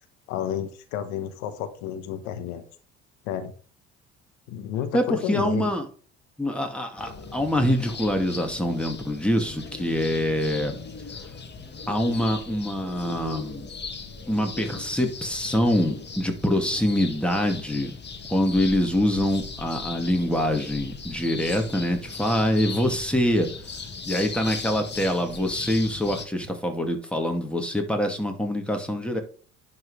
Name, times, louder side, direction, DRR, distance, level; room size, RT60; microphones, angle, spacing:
voice 1, 0.3-2.6 3.2-3.5 4.5-5.7, left 10 dB, 75° left, 8 dB, 1.2 m, -31 dB
voice 2, 4.9-5.9 6.4-10.8 11.9-13.7 14.3-18.0 18.3-23.5 24.1-29.2, equal, 5° left, 4 dB, 2.4 m, -25 dB
sound 1, 7.0-26.3, left 5 dB, 30° left, 1.8 m, -38 dB
10.5 x 4.2 x 4.9 m, 0.42 s
hypercardioid pair, 65°, 34 cm